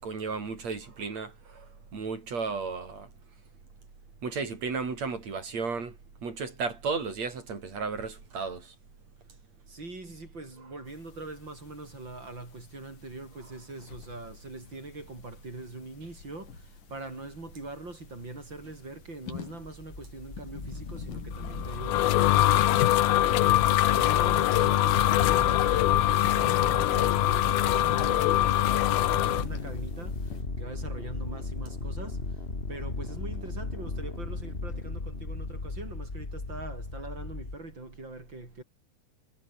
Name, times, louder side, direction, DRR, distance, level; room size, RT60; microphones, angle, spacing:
voice 1, 0.0-3.1 4.2-8.7, right 4 dB, 45° right, 6.1 m, -34 dB
voice 2, 9.7-22.8 23.1-32.2 32.7-38.6, right 2 dB, 30° right, 6.9 m, -42 dB
sound 1, 10.9-30.4, left 8 dB, 60° left, 4.1 m, -47 dB
sound 2, 19.6-37.6, left 3 dB, 15° left, 2.6 m, -36 dB
sound 3, 21.5-29.4, left 14 dB, 75° left, 2.9 m, -23 dB
omnidirectional pair, 4.4 m